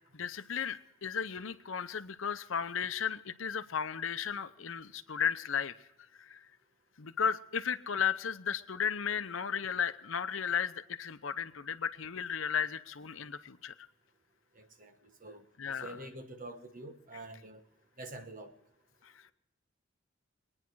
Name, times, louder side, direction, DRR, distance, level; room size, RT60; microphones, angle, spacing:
voice 1, 0.1-5.7 6.2-6.5 7.0-13.7 15.6-15.9 19.0-19.1, left 7 dB, 80° left, 12 dB, 0.8 m, -34 dB
voice 2, 14.5-17.6 18.0-18.6, right 1 dB, 45° right, 7 dB, 1.3 m, -47 dB
22.5 x 9.8 x 4.6 m, 0.87 s
head